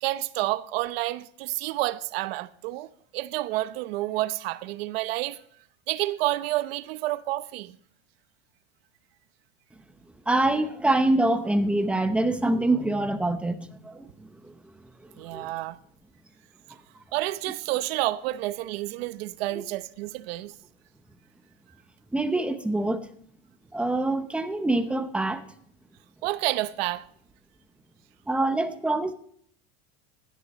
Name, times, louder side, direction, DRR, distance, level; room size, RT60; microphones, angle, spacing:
voice 1, 0.0-2.9 3.1-5.4 5.9-7.8 15.2-15.8 17.1-20.5 26.2-27.1, right 17 dB, 80° right, 0.8 m, -29 dB
voice 2, 10.3-14.6 15.3-15.5 22.1-23.1 23.7-25.4 28.3-29.1, right 2 dB, 5° right, 0.7 m, -25 dB
16.5 x 11.0 x 3.0 m
cardioid pair, 160°, 30 cm